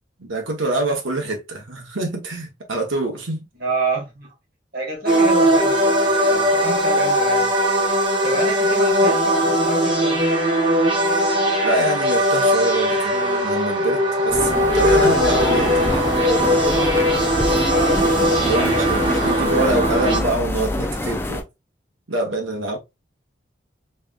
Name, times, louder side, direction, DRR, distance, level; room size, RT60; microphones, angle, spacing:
voice 1, 0.2-3.4 11.6-16.1 18.4-21.4 22.1-22.8, right 2 dB, 90° right, 1.2 m, -25 dB
voice 2, 3.6-4.3 4.7-7.5 8.2-10.2 17.7-18.0 18.5-18.9, right 2 dB, 50° right, 2.1 m, -28 dB
sound 1, 5.1-20.2, equal, 25° right, 1.0 m, -19 dB
sound 2, 14.3-21.4, left 1 dB, 10° left, 0.4 m, -24 dB
3.5 x 3.4 x 2.5 m
head